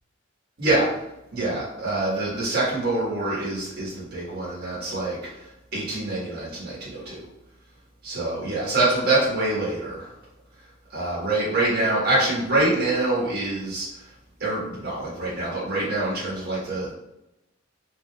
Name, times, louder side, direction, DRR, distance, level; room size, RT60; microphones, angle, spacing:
voice 1, 0.6-0.9 1.3-7.2 8.0-10.1 10.9-14.1 14.4-16.9, right 2 dB, 50° right, -8 dB, 1.4 m, -25 dB
3.8 x 3.5 x 2.3 m, 0.87 s
head